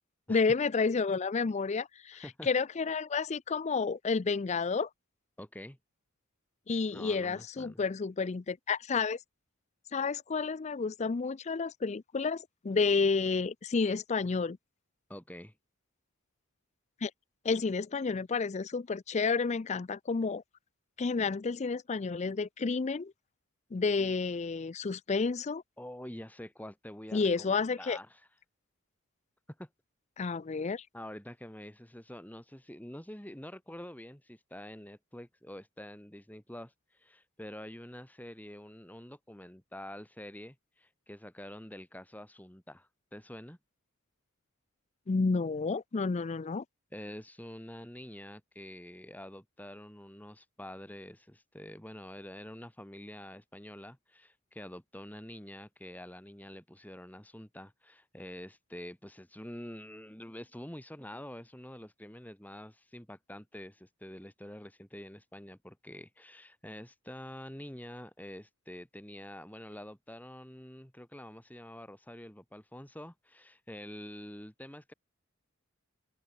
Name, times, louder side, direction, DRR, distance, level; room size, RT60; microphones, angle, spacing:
voice 1, 0.3-4.9 6.7-9.2 9.9-14.6 17.0-17.1 17.4-20.4 21.0-23.1 23.7-25.6 27.1-28.0 30.2-30.8 45.1-46.6, left 4 dB, 30° left, 0.4 m, -30 dB
voice 2, 2.1-2.5 5.4-5.8 6.9-7.8 15.1-15.5 25.8-28.2 29.6-29.7 30.9-43.6 46.9-74.9, left 1 dB, 10° left, 2.4 m, -47 dB
open air
head